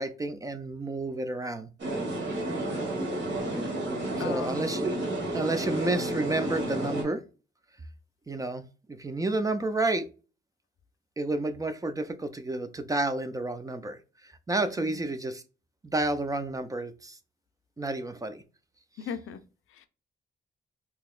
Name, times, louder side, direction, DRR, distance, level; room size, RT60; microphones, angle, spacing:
voice 1, 0.0-1.7 4.1-5.0 5.3-7.2 8.3-10.1 11.2-14.0 14.2-15.4 15.8-17.2 17.8-18.4, right 2 dB, 15° right, 0.3 m, -30 dB
sound 1, 1.8-7.0, right 1 dB, 65° right, 1.6 m, -31 dB
voice 2, 3.9-4.7 14.8-15.0 19.0-19.4 19.7-19.9, left 7 dB, 80° left, 0.5 m, -38 dB
3.9 x 2.8 x 2.4 m
cardioid pair, 120°, 21 cm